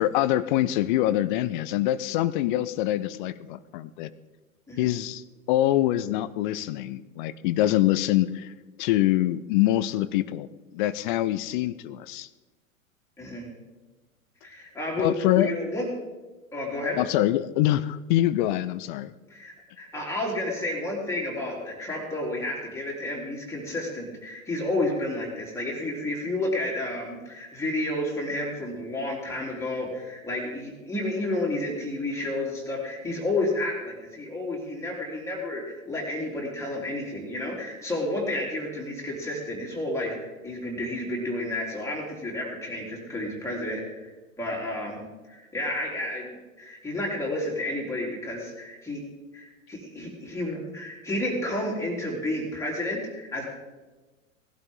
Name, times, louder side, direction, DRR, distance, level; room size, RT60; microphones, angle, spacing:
voice 1, 0.0-4.1 4.8-5.2 5.5-8.5 8.8-10.5 10.7-12.3 15.0-15.5 17.0-19.1, left 14 dB, 35° left, 16 dB, 0.6 m, -24 dB
voice 2, 13.2-13.5 14.4-15.9 16.5-17.0 19.3-44.1 44.4-45.0 45.3-49.0 49.3-53.4, left 1 dB, 5° left, -3 dB, 3.9 m, -31 dB
19.0 x 11.5 x 3.8 m, 1.2 s
figure-of-eight pair, 95°, 42 cm